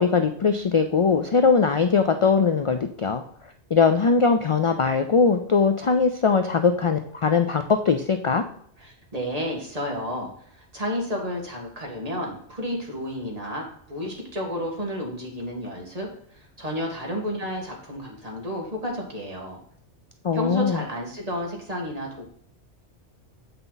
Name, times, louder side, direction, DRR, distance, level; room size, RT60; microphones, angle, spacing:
voice 1, 0.0-3.2 3.7-8.4 20.2-20.8, left 5 dB, 50° left, 7 dB, 0.3 m, -21 dB
voice 2, 8.8-16.1 16.3-19.6 20.3-22.2, equal, 35° right, -1 dB, 1.9 m, -31 dB
8.0 x 5.7 x 4.0 m, 0.63 s
omnidirectional pair, 1.2 m